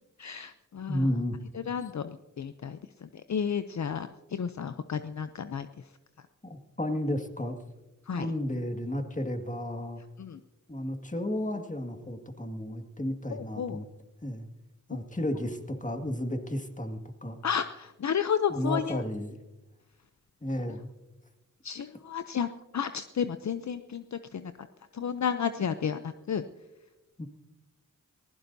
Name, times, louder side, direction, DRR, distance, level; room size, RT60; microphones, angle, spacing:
voice 1, 0.2-1.1 1.5-5.9 8.1-8.3 10.2-10.4 13.3-13.8 17.4-19.0 20.6-20.8 21.6-24.5 24.9-26.4, left 7 dB, 60° left, 10 dB, 0.6 m, -32 dB
voice 2, 0.9-1.4 6.4-7.5 8.1-10.0 10.7-13.8 14.2-14.5 14.9-17.4 18.5-19.4 20.4-20.9 27.2-27.3, left 1 dB, 25° left, 4 dB, 1.9 m, -32 dB
24.0 x 15.5 x 2.7 m, 1.1 s
cardioid pair, 40°, 32 cm